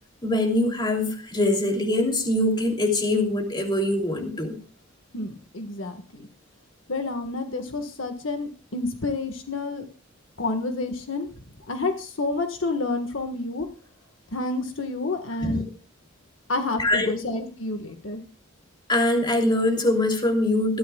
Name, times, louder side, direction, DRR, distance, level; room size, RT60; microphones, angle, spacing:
voice 1, 0.2-4.6 15.4-15.6 16.8-17.2 18.9-20.8, left 1 dB, 20° left, 2 dB, 3.0 m, -23 dB
voice 2, 5.1-6.3 6.9-9.8 10.4-11.3 11.7-13.7 14.3-15.6 16.5-18.2, left 2 dB, 70° left, 6 dB, 1.6 m, -29 dB
21.0 x 13.5 x 2.3 m, 0.39 s
head